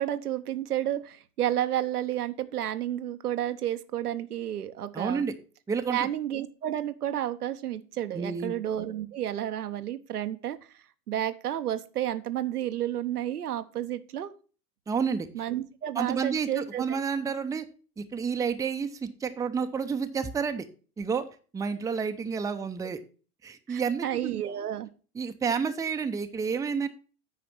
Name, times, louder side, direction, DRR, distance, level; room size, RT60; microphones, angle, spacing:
voice 1, 0.0-5.2 5.9-10.6 11.1-14.3 15.3-17.0 23.7-24.9, right 11 dB, 75° right, 10 dB, 0.9 m, -31 dB
voice 2, 4.9-5.3 5.7-6.1 8.1-8.5 14.9-15.3 16.0-17.6 18.0-20.7 21.0-21.3 21.5-23.0 23.4-24.3 25.1-26.9, right 6 dB, 5° right, 8 dB, 0.6 m, -30 dB
9.0 x 5.1 x 5.9 m, 0.37 s
figure-of-eight pair, 85°, 46 cm